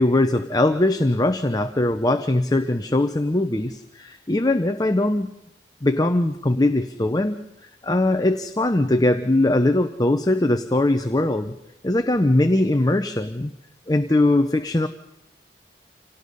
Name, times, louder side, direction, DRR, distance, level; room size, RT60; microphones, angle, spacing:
voice 1, 0.0-5.3 5.8-7.4 7.8-11.5 11.8-13.5 13.9-14.9, left 1 dB, 20° left, 7 dB, 0.8 m, -21 dB
27.0 x 18.5 x 5.4 m, 0.81 s
head